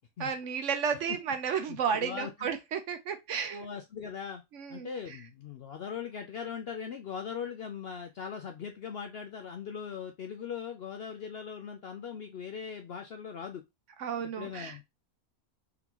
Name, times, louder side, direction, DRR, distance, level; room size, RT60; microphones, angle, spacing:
voice 1, 0.2-3.7 4.5-4.9 14.0-14.8, right 7 dB, 65° right, 0.9 m, -32 dB
voice 2, 1.7-2.5 3.5-4.4 4.7-13.6 14.4-14.8, left 7 dB, 65° left, 0.6 m, -40 dB
3.9 x 3.5 x 2.9 m
omnidirectional pair, 1.5 m